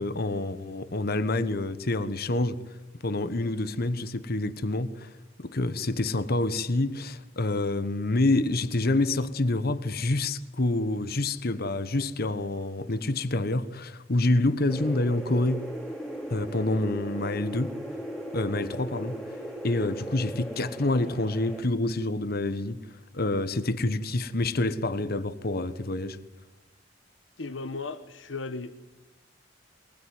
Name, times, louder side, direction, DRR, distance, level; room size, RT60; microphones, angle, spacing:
voice 1, 0.0-2.6 3.0-15.7 16.3-17.7 18.3-22.8 23.1-26.2, left 2 dB, 55° left, 1.2 m, -27 dB
sound 1, 14.7-21.6, equal, 5° left, 2.7 m, -38 dB
voice 2, 27.4-28.7, left 3 dB, 85° left, 1.1 m, -36 dB
23.0 x 19.5 x 9.5 m
head